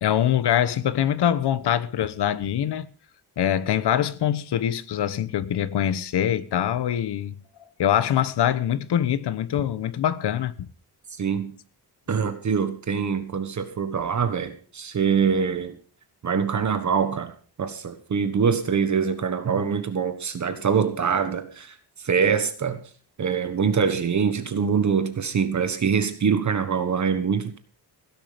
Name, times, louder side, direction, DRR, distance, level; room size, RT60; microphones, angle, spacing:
voice 1, 0.0-2.9 3.4-7.3 7.6-10.7, left 10 dB, 90° left, 1.2 m, -24 dB
voice 2, 11.2-11.5 12.1-15.8 16.2-17.3 17.6-21.7 22.0-22.8 23.2-27.6, right 6 dB, 45° right, 1.5 m, -24 dB
16.5 x 11.0 x 5.1 m
wide cardioid pair, 155°, 39 cm